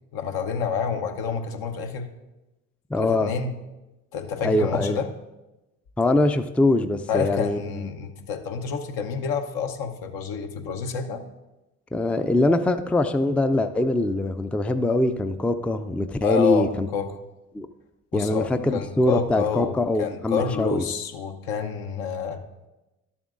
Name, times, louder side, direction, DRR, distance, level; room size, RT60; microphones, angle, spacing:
voice 1, 0.1-2.1 3.0-3.5 4.1-5.1 7.1-11.2 16.2-17.1 18.1-22.4, left 6 dB, 65° left, 5 dB, 0.9 m, -28 dB
voice 2, 2.9-3.3 4.4-5.0 6.0-7.9 11.9-16.9 17.5-17.7 18.1-20.8, left 2 dB, 5° left, 9 dB, 0.4 m, -23 dB
12.0 x 7.1 x 2.5 m, 1.0 s
hypercardioid pair, 50°, 38 cm